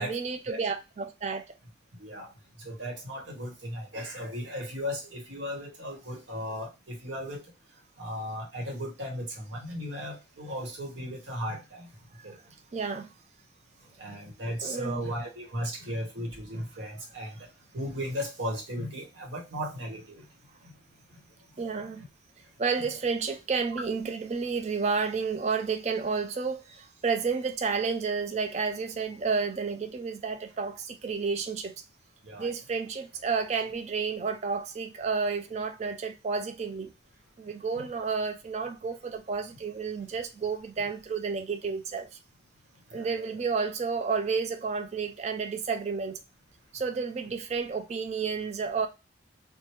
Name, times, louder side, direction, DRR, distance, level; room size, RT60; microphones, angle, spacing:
voice 1, 0.0-1.4 12.1-12.4 12.7-13.1 14.5-15.0 21.6-22.0 22.6-31.7 32.4-36.9 37.4-42.1 42.9-46.2 46.7-48.9, right 5 dB, 35° right, 0.3 m, -31 dB
voice 2, 2.0-2.3 2.6-7.4 8.0-11.9 12.2-12.3 14.0-17.3 17.7-20.2 32.2-32.5 37.7-37.8 42.9-43.4, equal, 80° right, 1.1 m, -36 dB
3.0 x 2.1 x 3.1 m
head